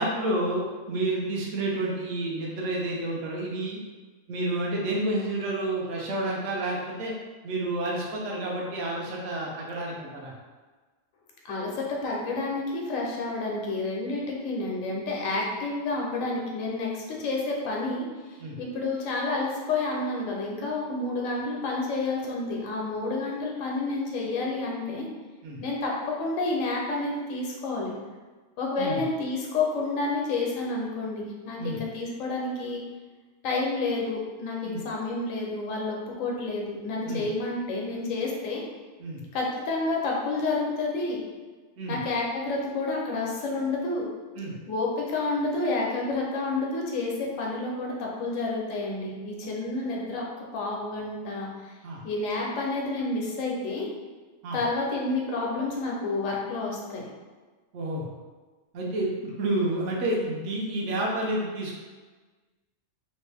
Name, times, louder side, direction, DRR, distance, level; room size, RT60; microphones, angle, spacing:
voice 1, 0.0-3.8 4.3-7.1 7.4-10.3 18.4-18.6 25.4-25.6 28.8-29.0 31.6-31.8 34.6-34.8 37.1-37.2 39.0-39.2 41.8-42.0 44.4-44.6 51.8-52.0 54.4-54.6 57.7-58.1 58.7-61.8, right 1 dB, 65° right, -3 dB, 1.0 m, -29 dB
voice 2, 11.5-25.1 25.6-27.9 28.6-32.8 33.4-38.6 39.3-41.2 41.9-44.1 44.7-50.2 50.5-51.7 52.0-53.9 54.5-57.0, left 3 dB, 75° left, -2 dB, 1.1 m, -29 dB
3.1 x 2.6 x 3.3 m, 1.3 s
omnidirectional pair, 1.4 m